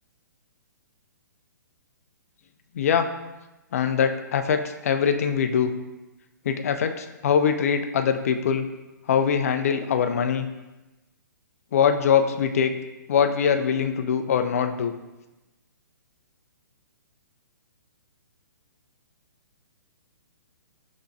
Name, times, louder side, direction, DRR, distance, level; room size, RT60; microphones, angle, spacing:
voice 1, 2.7-3.1 3.7-5.7 6.4-8.7 9.1-10.5 11.7-12.7 13.1-14.9, left 7 dB, 50° left, 8 dB, 0.4 m, -22 dB
5.5 x 2.9 x 2.6 m, 1.0 s
figure-of-eight pair, 120°, 10 cm